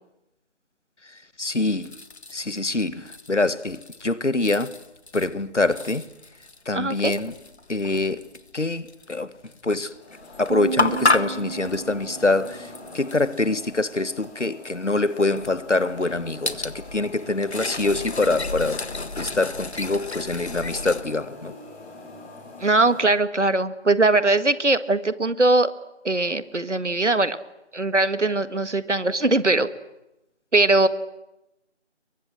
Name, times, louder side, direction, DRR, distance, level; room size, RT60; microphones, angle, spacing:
voice 1, 1.0-2.0 2.3-4.7 5.1-6.0 6.6-7.3 7.7-8.2 8.5-9.3 9.6-9.9 10.4-18.8 19.2-21.5, left 2 dB, 85° left, 1.7 m, -25 dB
sound 1, 1.8-2.7 3.1-4.1 4.3-5.3 5.7-9.1 9.5-9.7 10.1-13.8 14.2-14.3 14.6-14.7 15.3-21.0, left 3 dB, 65° left, 1.7 m, -31 dB
voice 2, 6.7-7.1 22.6-25.7 26.0-27.4 27.7-29.7 30.5-30.9, right 2 dB, 80° right, 1.8 m, -20 dB
sound 2, 9.9-23.1, left 2 dB, 10° left, 4.1 m, -44 dB
sound 3, 10.5-12.9, right 5 dB, 35° right, 1.3 m, -33 dB
29.5 x 23.0 x 7.7 m
figure-of-eight pair, 165°, 35 cm